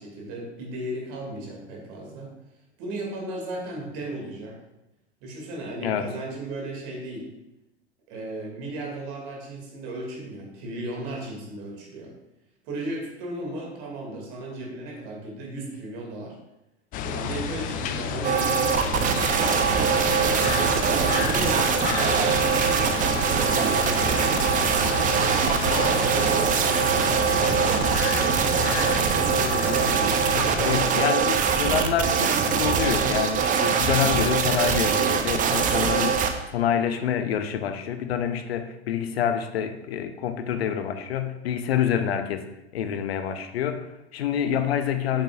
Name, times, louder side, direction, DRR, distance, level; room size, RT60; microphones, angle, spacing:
voice 1, 0.0-2.3 2.8-4.6 5.2-7.3 8.1-12.1 12.6-16.4 17.0-19.2 20.0-25.6 26.5-28.5 29.1-30.3, right 1 dB, 50° right, 0 dB, 2.5 m, -36 dB
sound 1, 16.9-30.8, left 6 dB, 25° left, 0.4 m, -31 dB
sound 2, 18.2-36.3, right 6 dB, 25° right, 0.7 m, -23 dB
Stream / Ocean, 19.1-26.4, right 1 dB, 90° right, 1.1 m, -36 dB
voice 2, 30.2-42.4 42.7-45.2, left 8 dB, 65° left, 9 dB, 0.8 m, -27 dB
8.8 x 7.4 x 2.5 m, 0.92 s
figure-of-eight pair, 85°, 33 cm